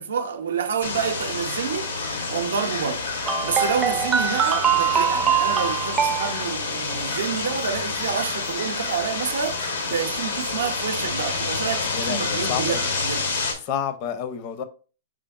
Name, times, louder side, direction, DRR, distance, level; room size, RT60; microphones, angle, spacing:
voice 1, 0.0-1.9 2.3-3.0 3.4-13.2, right 7 dB, 80° right, 0.5 m, -28 dB
sound 1, 0.8-13.5, left 4 dB, 85° left, 0.9 m, -28 dB
sound 2, 3.2-6.4, right 7 dB, 20° right, 0.4 m, -23 dB
voice 2, 11.9-12.9 13.5-14.6, left 8 dB, 45° left, 0.5 m, -30 dB
4.9 x 3.4 x 2.3 m
hypercardioid pair, 125°, 0 cm